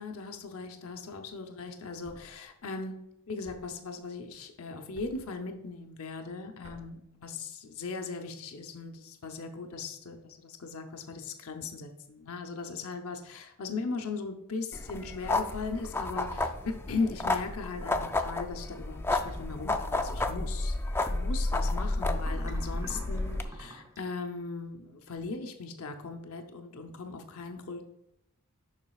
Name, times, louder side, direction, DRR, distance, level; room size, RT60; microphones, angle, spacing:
voice 1, 0.0-3.0 3.3-27.9, left 4 dB, 75° left, 4 dB, 0.7 m, -38 dB
Thump thud, 2.0-2.4 3.4-3.8 4.9-5.3 6.6-7.0, equal, 60° right, 1.2 m, -52 dB
sound 1, 14.7-23.4, left 2 dB, 10° left, 0.4 m, -31 dB
sound 2, 19.1-19.6 22.2-24.0, right 1 dB, 15° right, 0.7 m, -47 dB
7.3 x 5.9 x 2.3 m, 0.83 s
head